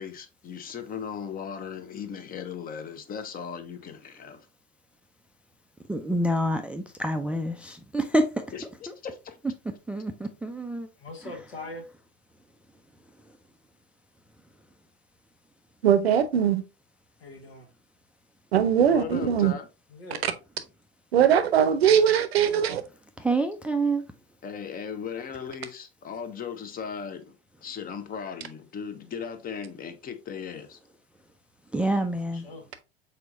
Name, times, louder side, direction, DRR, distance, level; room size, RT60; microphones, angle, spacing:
voice 1, 0.0-4.5 8.5-8.6 9.0-9.4 18.9-19.7 24.4-27.4 27.6-30.8, left 7 dB, 30° left, 0.8 m, -37 dB
voice 2, 5.9-8.3 8.9-9.0 9.9-10.9 23.2-24.0 31.7-32.5, right 1 dB, 5° right, 0.3 m, -27 dB
voice 3, 11.0-11.9 17.2-17.7 19.9-20.2 32.2-32.8, left 2 dB, 80° left, 1.5 m, -42 dB
voice 4, 15.8-16.6 18.5-19.5 21.1-22.8, right 8 dB, 80° right, 0.7 m, -21 dB
4.4 x 4.0 x 2.5 m
hypercardioid pair, 85°, 31 cm